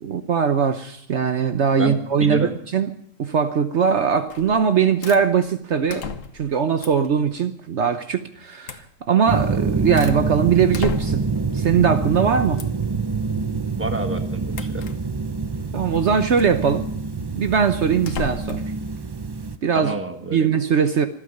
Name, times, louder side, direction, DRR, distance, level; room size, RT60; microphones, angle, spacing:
voice 1, 0.0-2.9 3.2-6.1 6.3-11.2 11.5-12.6 15.7-16.9 17.3-18.6 19.6-20.0 20.3-21.1, right 7 dB, 60° right, 1.2 m, -20 dB
voice 2, 1.8-2.5 13.8-14.8 19.7-20.5, right 2 dB, 10° right, 1.7 m, -29 dB
sound 1, 4.3-4.6 5.0-5.2 5.9-6.5 6.8-7.1 8.6-8.9 9.5-10.2 10.7-11.4 12.6-12.9 14.5-15.0 16.3-16.6 18.0-18.7, left 5 dB, 80° left, 1.5 m, -33 dB
sound 2, 9.3-19.6, right 4 dB, 35° right, 0.4 m, -26 dB
25.5 x 8.7 x 6.5 m
omnidirectional pair, 1.4 m